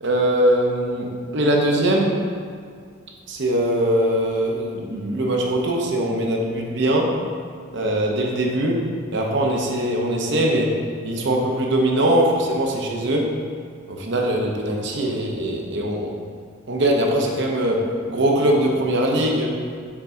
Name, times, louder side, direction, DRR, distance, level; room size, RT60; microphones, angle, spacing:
voice 1, 0.0-2.2 3.3-7.1 7.7-8.8 9.1-10.8 11.0-13.3 13.9-16.2 16.7-19.5, right 1 dB, 60° right, 0 dB, 0.8 m, -21 dB
5.8 x 3.9 x 4.4 m, 2.1 s
head